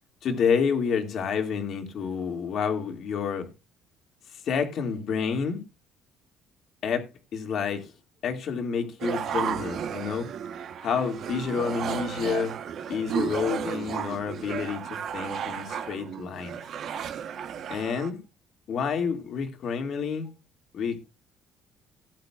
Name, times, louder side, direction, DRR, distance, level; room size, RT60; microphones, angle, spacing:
voice 1, 0.2-3.5 4.3-5.6 6.8-7.9 8.2-10.3 10.8-12.5 12.9-16.6 17.7-18.2 18.7-20.3 20.7-21.1, left 6 dB, 55° left, 2.4 m, -29 dB
sound 1, 9.0-18.1, right 8 dB, 55° right, 1.1 m, -33 dB
17.5 x 8.5 x 2.5 m
cardioid pair, 140°, 0 cm